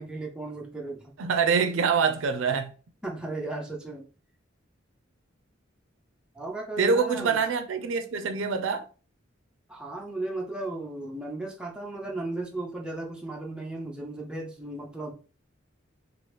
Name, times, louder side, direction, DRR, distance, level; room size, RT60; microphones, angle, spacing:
voice 1, 0.0-1.2 3.0-4.1 6.4-7.4 9.7-15.1, right 2 dB, 5° right, 0.6 m, -35 dB
voice 2, 1.2-2.7 6.8-8.9, right 5 dB, 80° right, 0.4 m, -25 dB
2.9 x 2.5 x 3.2 m
head